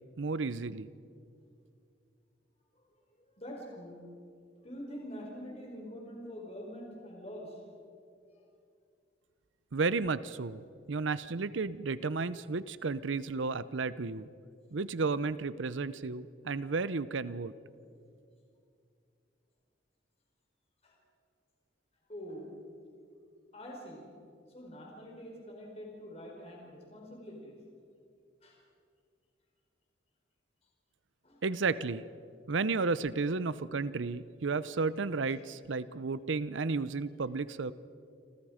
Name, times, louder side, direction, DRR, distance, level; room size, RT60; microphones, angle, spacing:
voice 1, 0.2-0.9 9.7-14.3 14.7-17.5 31.4-32.0 32.5-37.7, right 4 dB, 85° right, 16 dB, 0.7 m, -33 dB
voice 2, 3.3-4.0 4.6-7.6 20.8-20.9 22.1-22.6 23.5-24.1 24.5-27.6 28.4-28.6 31.2-31.4, equal, 35° left, -1 dB, 4.6 m, -45 dB
28.0 x 26.5 x 5.0 m, 2.4 s
head